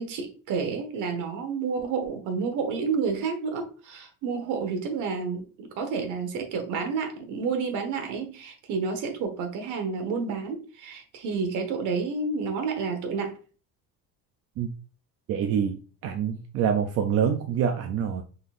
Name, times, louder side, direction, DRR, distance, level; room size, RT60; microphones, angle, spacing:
voice 1, 0.0-13.4, right 5 dB, 60° right, 6 dB, 1.2 m, -30 dB
voice 2, 15.3-18.2, right 8 dB, 45° right, 4 dB, 0.5 m, -26 dB
5.3 x 3.9 x 2.5 m, 0.37 s
cardioid pair, 180°, 34 cm